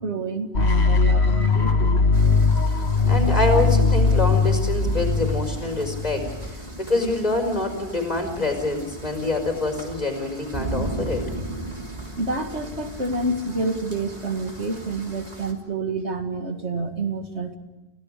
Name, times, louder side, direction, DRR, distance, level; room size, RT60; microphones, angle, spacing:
voice 1, 0.0-2.0 12.2-17.6, right 3 dB, 80° right, 5 dB, 2.4 m, -28 dB
sound 1, 0.5-6.5, left 4 dB, 70° left, 1.9 m, -20 dB
sound 2, 2.1-15.5, right 2 dB, 35° right, 3.2 m, -36 dB
voice 2, 3.1-6.3 6.5-11.3, left 2 dB, 40° left, 4 dB, 4.9 m, -26 dB
30.0 x 16.0 x 6.8 m, 1.1 s
omnidirectional pair, 1.1 m